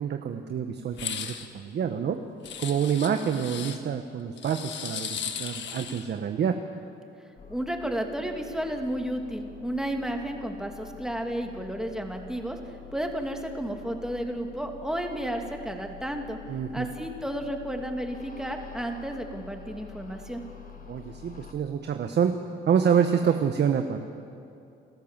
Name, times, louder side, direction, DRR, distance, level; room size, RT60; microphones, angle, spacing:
voice 1, 0.0-2.2 2.6-6.6 16.5-16.9 20.9-22.3 22.7-24.0, right 7 dB, 60° right, 6 dB, 1.2 m, -27 dB
sound 1, 0.9-1.5 2.4-3.8 4.4-6.1, left 8 dB, 65° left, 1.6 m, -36 dB
sound 2, 7.4-21.5, left 8 dB, 45° left, 2.1 m, -47 dB
voice 2, 7.5-16.4 16.7-20.4, right 1 dB, 5° right, 3 dB, 2.4 m, -32 dB
28.0 x 13.0 x 7.4 m, 2.5 s
cardioid pair, 90°, 20 cm